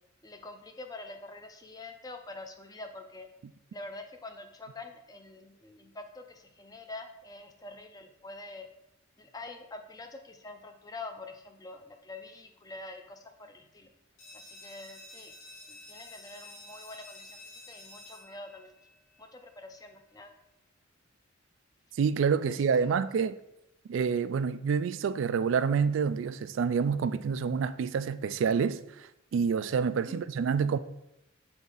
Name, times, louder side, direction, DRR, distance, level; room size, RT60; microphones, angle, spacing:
voice 1, 0.2-3.3 3.7-8.7 9.2-13.9 14.3-15.3 15.7-17.4 17.7-18.7 19.2-20.3 22.8-23.0 30.1-30.2, left 2 dB, 20° left, 0.5 m, -45 dB
sound 1, 14.2-19.6, left 2 dB, 60° left, 1.7 m, -50 dB
voice 2, 22.0-23.4 23.9-30.8, right 6 dB, 65° right, 0.3 m, -28 dB
7.0 x 3.6 x 3.9 m
head